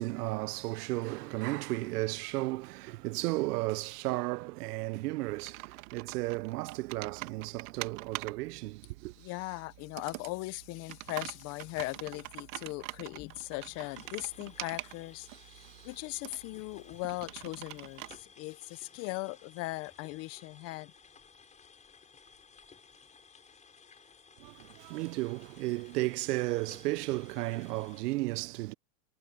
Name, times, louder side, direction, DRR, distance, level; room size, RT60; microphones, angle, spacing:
voice 1, 0.0-9.1 24.4-28.7, right 20 dB, 75° right, 0.6 m, -34 dB
Computer keyboard, 5.2-18.2, right 21 dB, 60° right, 1.8 m, -45 dB
voice 2, 9.2-15.3 15.8-20.9, left 22 dB, 35° left, 0.7 m, -39 dB
sound 1, 13.2-28.0, left 5 dB, 15° left, 5.8 m, -57 dB
supercardioid pair, 150°, 46 cm